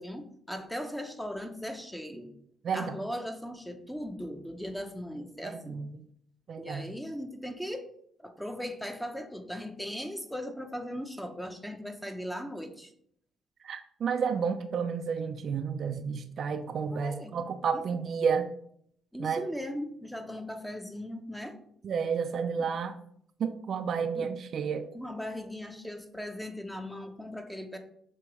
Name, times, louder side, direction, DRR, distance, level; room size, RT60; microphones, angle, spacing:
voice 1, 0.0-2.3 2.7-5.8 6.6-7.9 8.2-12.9 16.9-17.4 17.7-17.8 19.1-21.6 22.6-22.7 24.1-24.3 24.9-27.8, equal, 5° left, 5 dB, 0.9 m, -38 dB
voice 2, 5.4-5.9 6.5-6.8 13.6-18.5 19.2-19.4 21.8-23.0 23.4-24.9, right 6 dB, 60° right, 8 dB, 0.5 m, -31 dB
6.8 x 2.9 x 4.7 m, 0.67 s
cardioid pair, 90°, 0 cm